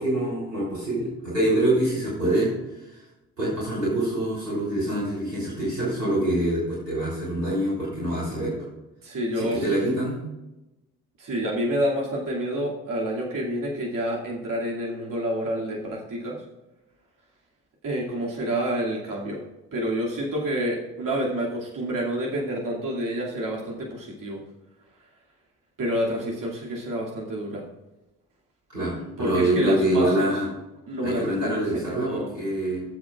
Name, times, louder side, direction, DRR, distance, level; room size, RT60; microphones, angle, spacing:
voice 1, 0.0-3.0 3.4-8.5 9.3-10.2 28.7-30.5 31.0-32.8, right 1 dB, 90° right, -8 dB, 3.4 m, -25 dB
voice 2, 9.0-9.6 11.2-16.4 17.8-19.4 19.7-24.4 25.8-27.6 29.2-30.3 30.9-32.3, equal, 40° right, -3 dB, 2.5 m, -28 dB
18.5 x 7.3 x 2.4 m, 0.98 s
figure-of-eight pair, 45°, 47 cm